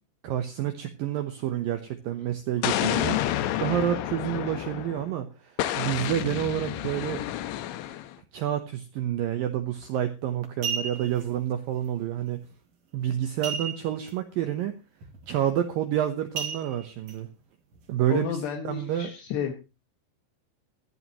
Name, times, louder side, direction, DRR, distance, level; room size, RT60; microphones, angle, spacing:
voice 1, 0.2-3.2 3.6-7.2 8.3-12.4 12.9-14.7 15.3-17.3 17.9-18.4 18.6-19.1, right 11 dB, 80° right, 8 dB, 2.1 m, -29 dB
Explosion, 2.6-5.1 5.6-8.1, left 13 dB, 90° left, 3.3 m, -29 dB
sound 1, 9.8-10.0 10.4-11.2 13.4-14.1 14.4-14.5 15.0-15.3 16.4-17.1 17.7-17.8, right 6 dB, 45° right, 2.5 m, -33 dB
voice 2, 18.1-19.5, left 8 dB, 70° left, 3 dB, 3.5 m, -32 dB
16.0 x 14.0 x 3.0 m, 0.29 s
omnidirectional pair, 5.3 m